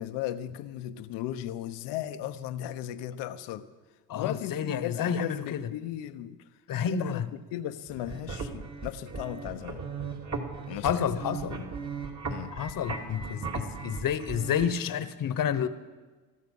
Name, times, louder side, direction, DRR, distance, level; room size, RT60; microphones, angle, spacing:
voice 1, 0.0-3.7 4.1-6.4 6.8-9.8 10.7-11.0 12.3-12.5, left 12 dB, 80° left, 1.0 m, -36 dB
voice 2, 4.1-5.7 6.7-7.3 10.7-11.7 12.6-15.7, left 8 dB, 50° left, 1.2 m, -30 dB
sound 1, 7.9-14.6, right 4 dB, 40° right, 2.5 m, -37 dB
20.5 x 13.0 x 5.5 m
supercardioid pair, 85°, 41 cm